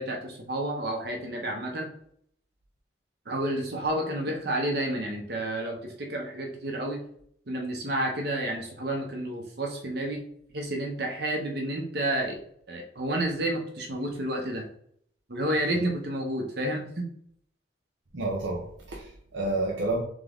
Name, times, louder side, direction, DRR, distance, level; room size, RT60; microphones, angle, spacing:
voice 1, 0.0-1.9 3.3-7.0 7.5-10.2 10.5-12.4 12.7-14.7 15.3-17.0, right 1 dB, 60° right, 2 dB, 1.0 m, -30 dB
voice 2, 18.1-20.0, right 2 dB, 75° right, -2 dB, 0.8 m, -30 dB
3.8 x 3.7 x 3.5 m, 0.65 s
head